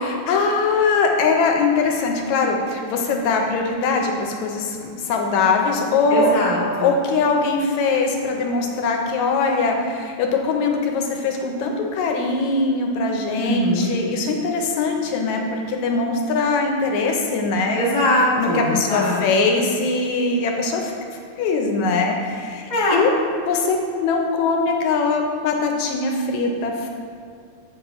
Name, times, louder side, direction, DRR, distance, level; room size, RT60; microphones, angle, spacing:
voice 1, 0.0-6.3 6.8-17.8 18.4-20.9 21.4-23.1 23.5-26.9, left 4 dB, 75° left, 2 dB, 1.9 m, -21 dB
voice 2, 6.1-6.9 13.4-13.9 17.7-19.2 22.7-23.0, left 1 dB, 45° left, -6 dB, 0.5 m, -21 dB
8.6 x 5.2 x 3.0 m, 2.4 s
omnidirectional pair, 3.4 m